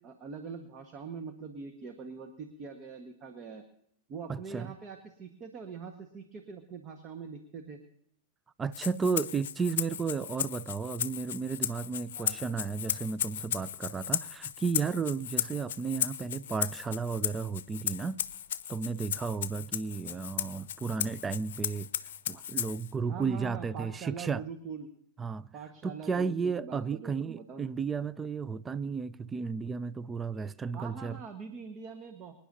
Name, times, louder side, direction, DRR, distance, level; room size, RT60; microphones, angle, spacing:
voice 1, 0.0-3.6 4.1-7.8 12.1-12.4 23.0-24.9 25.5-27.7 30.7-32.3, right 5 dB, 35° right, 1.4 m, -43 dB
voice 2, 4.3-4.7 8.6-18.2 18.7-21.9 22.3-24.4 25.2-25.5 25.8-31.2, right 5 dB, 20° right, 0.4 m, -33 dB
Rattle (instrument), 8.7-22.9, left 10 dB, 65° left, 0.7 m, -36 dB
26.0 x 10.0 x 2.8 m
figure-of-eight pair, 95°, 0 cm